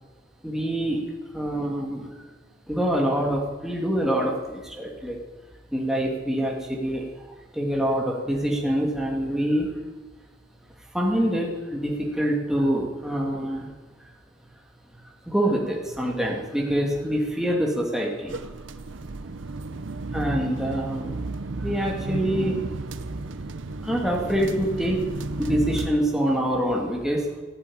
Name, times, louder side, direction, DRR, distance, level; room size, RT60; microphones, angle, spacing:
voice 1, 0.4-1.1 1.3-2.1 2.7-5.2 5.7-7.3 7.5-9.7 10.9-13.7 14.9-18.4 19.2-19.4 19.7-19.9 20.1-22.6 23.8-25.1 25.4-27.2, equal, ahead, -2 dB, 2.5 m, -25 dB
sound 1, 18.3-25.9, right 2 dB, 85° right, 0.8 m, -33 dB
15.0 x 8.7 x 8.8 m, 1.3 s
head